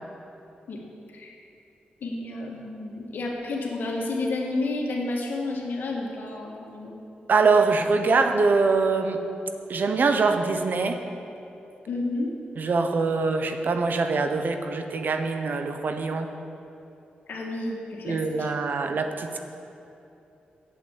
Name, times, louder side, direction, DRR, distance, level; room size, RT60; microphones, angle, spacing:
voice 1, 2.0-7.0 11.9-12.3 17.3-18.5, left 2 dB, 75° left, 0 dB, 1.7 m, -31 dB
voice 2, 7.3-9.2 9.7-11.0 12.6-16.3 18.1-19.4, right 4 dB, 65° right, 6 dB, 0.8 m, -23 dB
8.2 x 7.7 x 7.2 m, 2.8 s
cardioid pair, 55°, 3 cm